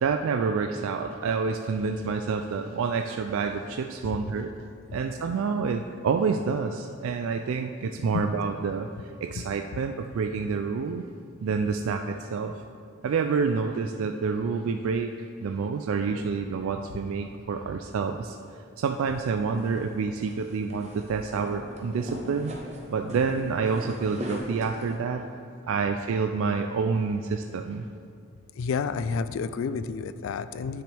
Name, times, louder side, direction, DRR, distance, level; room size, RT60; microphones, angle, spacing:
voice 1, 0.0-4.5 4.9-8.9 9.2-11.0 11.4-12.5 13.0-15.1 15.4-18.4 18.8-22.5 22.9-25.3 25.7-27.8, right 5 dB, 70° right, 6 dB, 0.3 m, -28 dB
sound 1, 18.9-25.0, equal, 30° right, 0.9 m, -40 dB
voice 2, 28.6-30.8, left 5 dB, 65° left, 13 dB, 0.3 m, -30 dB
10.0 x 6.1 x 3.4 m, 2.3 s
head